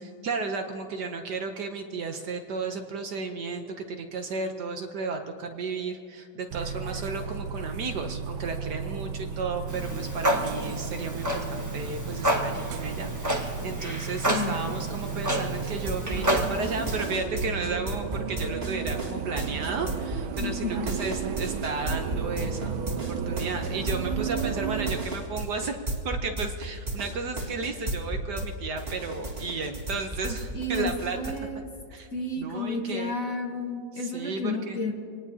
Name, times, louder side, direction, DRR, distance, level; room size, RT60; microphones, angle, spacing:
voice 1, 0.0-22.8 23.1-25.8 26.0-31.2 31.9-32.1 32.4-33.2 33.9-34.8, right 4 dB, 60° right, 5 dB, 1.3 m, -33 dB
sound 1, 6.5-25.1, right 7 dB, 80° right, 1.7 m, -34 dB
Clock, 9.7-17.1, equal, 10° right, 1.0 m, -30 dB
voice 2, 14.3-14.6 20.4-20.9 30.5-31.7 32.1-34.9, left 2 dB, 45° left, 2 dB, 1.6 m, -32 dB
sound 2, 15.6-28.5 28.8-31.4, right 1 dB, 30° right, 2.1 m, -33 dB
26.0 x 19.0 x 2.8 m, 2.3 s
omnidirectional pair, 2.2 m